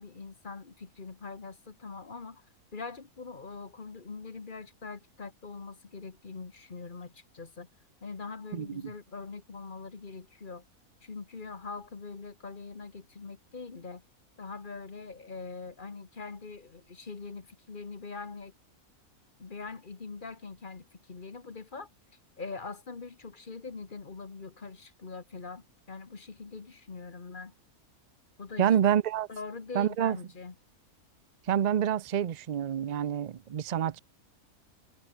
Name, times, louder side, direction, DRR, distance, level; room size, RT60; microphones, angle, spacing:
voice 1, 0.0-2.4 2.7-7.7 8.0-10.6 11.0-14.0 14.4-18.5 19.4-21.9 22.4-27.5 28.4-28.7 29.3-30.5, left 4 dB, 35° left, 1.5 m, -43 dB
voice 2, 8.5-8.9 28.6-29.3 29.7-30.2 31.5-34.0, right 9 dB, 65° right, 0.4 m, -27 dB
omnidirectional pair, 1.5 m